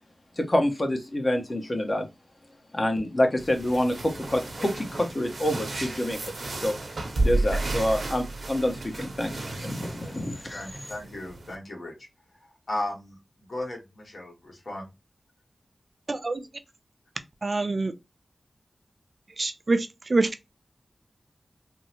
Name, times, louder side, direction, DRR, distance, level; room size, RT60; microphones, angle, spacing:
voice 1, 0.4-2.1 2.7-6.2 6.6-6.7 7.2-9.3 9.6-10.7, left 1 dB, 40° left, 0.9 m, -27 dB
sound 1, 3.4-11.6, right 2 dB, 75° right, 0.8 m, -32 dB
voice 2, 10.5-11.9 12.7-14.9, left 1 dB, 60° left, 1.2 m, -36 dB
voice 3, 16.1-16.5 17.4-17.9 19.4-20.3, right 3 dB, 50° right, 0.5 m, -26 dB
3.5 x 2.0 x 2.8 m
wide cardioid pair, 60°, 0 cm